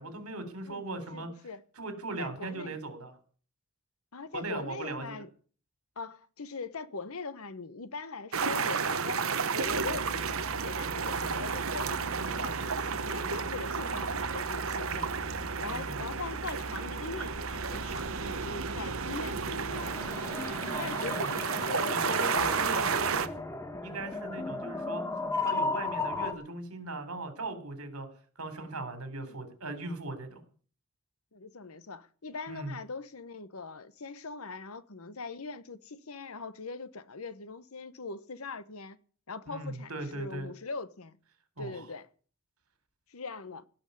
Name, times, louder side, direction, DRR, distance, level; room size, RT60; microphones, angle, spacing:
voice 1, 0.0-1.3 1.8-3.1 4.3-5.2 15.7-16.0 20.6-21.3 21.9-23.3 23.8-25.0 25.4-28.1 28.4-30.4 32.5-32.7 39.5-40.5 41.6-41.8, right 2 dB, 80° right, 3.6 m, -38 dB
voice 2, 0.7-1.6 2.2-2.8 4.1-5.3 6.0-9.3 9.5-15.2 15.6-22.9 29.1-29.4 31.3-39.0 39.3-41.2 41.6-42.1 43.1-43.6, left 4 dB, 75° left, 1.1 m, -41 dB
sound 1, 8.3-23.3, right 5 dB, 65° right, 1.0 m, -32 dB
sound 2, 9.6-19.9, equal, 30° right, 3.6 m, -44 dB
sound 3, 19.7-26.3, left 3 dB, 15° left, 1.3 m, -35 dB
17.0 x 6.3 x 9.4 m
head